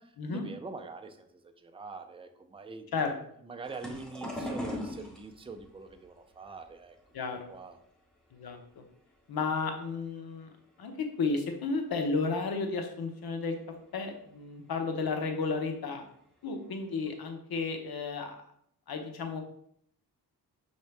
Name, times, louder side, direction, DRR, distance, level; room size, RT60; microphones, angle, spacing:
voice 1, 0.0-3.0 3.4-7.0 7.5-7.8, right 3 dB, 15° right, 6 dB, 0.4 m, -44 dB
sound 1, 3.6-8.8 9.1-10.0 10.5-10.8 11.1-11.2 12.4-12.5 13.0-13.1 13.7-13.8 14.0-14.3 15.5-15.7 16.3-16.4 16.8-17.2, left 1 dB, ahead, 0.9 m, -41 dB
voice 2, 7.1-7.5 8.3-8.8 9.3-10.5 10.8-13.6 13.9-16.0 16.4-18.4 18.9-19.4, left 4 dB, 70° left, 5 dB, 0.8 m, -33 dB
5.4 x 2.8 x 3.3 m, 0.68 s
wide cardioid pair, 100°, 38 cm